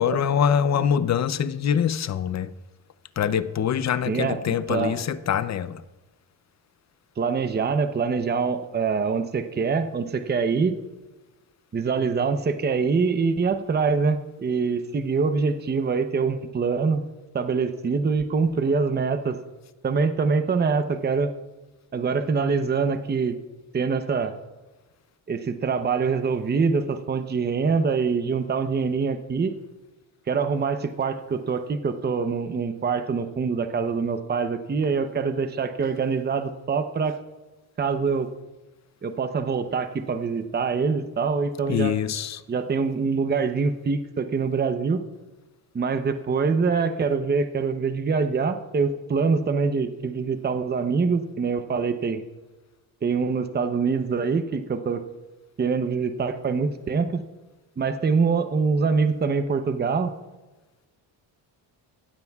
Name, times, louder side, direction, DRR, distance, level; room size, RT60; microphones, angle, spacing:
voice 1, 0.0-2.5 3.2-5.8 41.7-42.4, left 8 dB, 40° left, 0.6 m, -24 dB
voice 2, 4.1-4.4 4.7-5.0 7.2-10.8 11.7-17.0 17.3-19.4 19.8-21.3 21.9-23.4 23.7-24.3 25.3-29.5 30.3-37.1 37.8-38.3 39.0-41.9 42.5-45.0 45.7-52.2 53.0-55.0 55.6-57.2 57.8-60.1, right 5 dB, 25° right, 0.8 m, -24 dB
17.5 x 13.0 x 2.4 m
cardioid pair, 105°, 43 cm